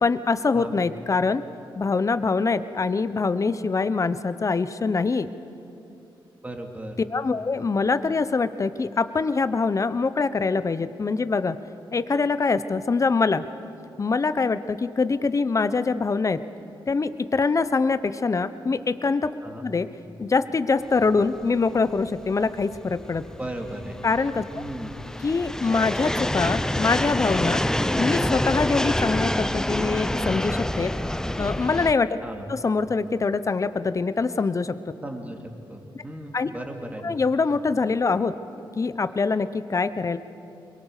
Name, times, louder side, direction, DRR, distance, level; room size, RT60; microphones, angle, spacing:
voice 1, 0.0-1.4 1.8-5.3 7.1-11.6 11.9-13.4 14.0-16.4 16.9-19.3 19.6-19.9 20.2-23.3 24.0-24.4 25.2-27.6 27.9-30.9 31.4-32.2 32.5-34.8 36.3-36.5 37.0-38.3 38.8-40.2, left 4 dB, 35° left, 12 dB, 0.9 m, -24 dB
voice 2, 6.4-7.0 7.4-7.5 19.4-19.6 23.4-24.0 24.5-25.0 32.2-32.5 35.0-35.4 35.7-37.2, right 1 dB, 15° right, 2 dB, 3.1 m, -36 dB
sound 1, 21.0-31.9, left 1 dB, 5° left, 0.6 m, -27 dB
22.5 x 22.0 x 6.7 m, 2.7 s
cardioid pair, 75°, 9 cm